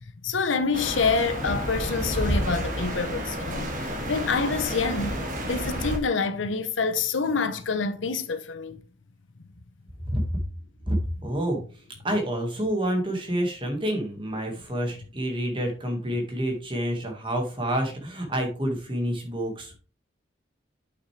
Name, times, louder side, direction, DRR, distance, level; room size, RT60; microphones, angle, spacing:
voice 1, 0.2-8.8, left 4 dB, 85° left, 0.9 m, -27 dB
sound 1, 0.7-6.0, equal, 45° right, 1.6 m, -30 dB
voice 2, 10.1-10.4 10.9-11.6 12.0-19.7, equal, 25° right, 1.8 m, -28 dB
8.1 x 6.2 x 3.3 m
head